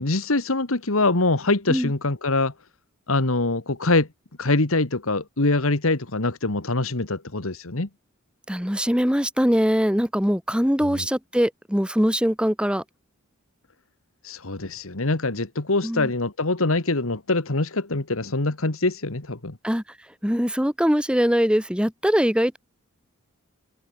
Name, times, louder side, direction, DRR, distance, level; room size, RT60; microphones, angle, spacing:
voice 1, 0.0-2.5 3.1-4.1 4.4-7.9 10.8-11.1 14.2-19.6, left 2 dB, 75° left, 1.9 m, -24 dB
voice 2, 8.5-12.8 15.8-16.1 19.6-19.8 20.2-22.6, equal, 5° right, 1.9 m, -22 dB
head